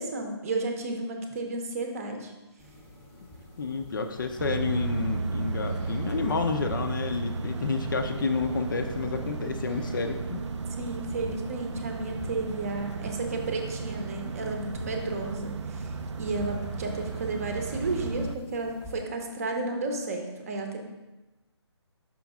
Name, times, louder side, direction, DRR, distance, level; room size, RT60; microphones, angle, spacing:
voice 1, 0.0-2.3 6.2-6.3 10.8-15.9 16.2-20.8, right 2 dB, 30° right, 4 dB, 0.7 m, -32 dB
sound 1, 2.6-19.0, left 1 dB, 5° left, 0.7 m, -46 dB
voice 2, 3.6-10.4, left 4 dB, 45° left, 7 dB, 0.5 m, -30 dB
sound 2, 4.4-18.4, right 4 dB, 85° right, 0.4 m, -34 dB
6.1 x 5.1 x 3.5 m, 1.1 s
hypercardioid pair, 160°, 15 cm